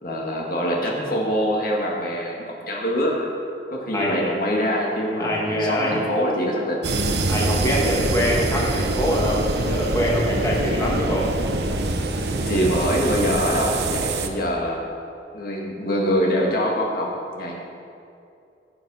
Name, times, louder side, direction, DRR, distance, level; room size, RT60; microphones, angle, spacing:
voice 1, 0.0-3.3 3.7-6.9 12.3-14.8 15.3-17.6, equal, 55° left, -2 dB, 1.9 m, -24 dB
voice 2, 3.9-4.3 5.2-6.0 7.3-11.3, equal, 20° left, -4 dB, 1.9 m, -24 dB
sound 1, 6.8-14.3, right 2 dB, 65° right, 1.0 m, -24 dB
17.0 x 7.6 x 5.5 m, 2.6 s
head